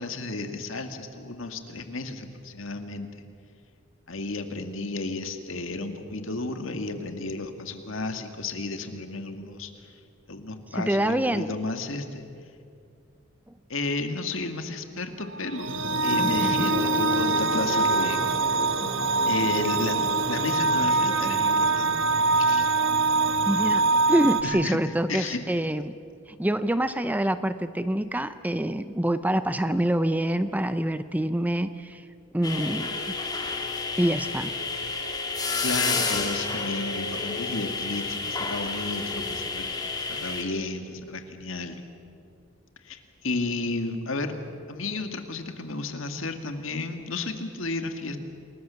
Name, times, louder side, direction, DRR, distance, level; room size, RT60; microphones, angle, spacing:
voice 1, 0.0-3.1 4.1-9.9 10.3-12.2 13.7-15.7 16.0-18.2 19.3-20.0 20.3-22.0 22.3-22.7 24.4-24.8 25.1-25.4 35.6-39.7 40.1-41.8 42.8-44.4 44.7-48.2, left 3 dB, 70° left, 7 dB, 2.0 m, -32 dB
voice 2, 10.8-11.5 16.2-16.6 23.5-25.9 26.3-32.1 32.3-33.2 34.0-34.5, right 1 dB, 10° right, 12 dB, 0.6 m, -26 dB
sound 1, 15.3-24.4, right 3 dB, 65° right, 1.3 m, -24 dB
sound 2, 16.6-22.4, left 2 dB, 45° left, 3.5 m, -36 dB
sound 3, 32.4-40.4, left 4 dB, 20° left, 2.4 m, -30 dB
28.5 x 20.5 x 7.0 m, 2.3 s
head